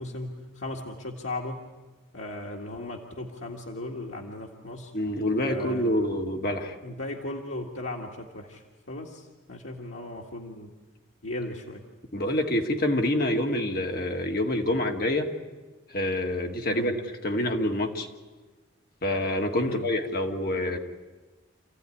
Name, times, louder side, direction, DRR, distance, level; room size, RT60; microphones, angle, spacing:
voice 1, 0.0-1.7 2.1-4.9 5.5-6.1 6.8-10.7 11.2-11.8 16.6-16.9 19.6-19.9, left 2 dB, 80° left, -1 dB, 2.0 m, -37 dB
voice 2, 4.9-6.8 12.1-15.3 15.9-17.0 17.2-18.1 19.0-20.8, left 1 dB, 45° left, 3 dB, 2.0 m, -26 dB
27.5 x 15.5 x 9.9 m, 1.2 s
head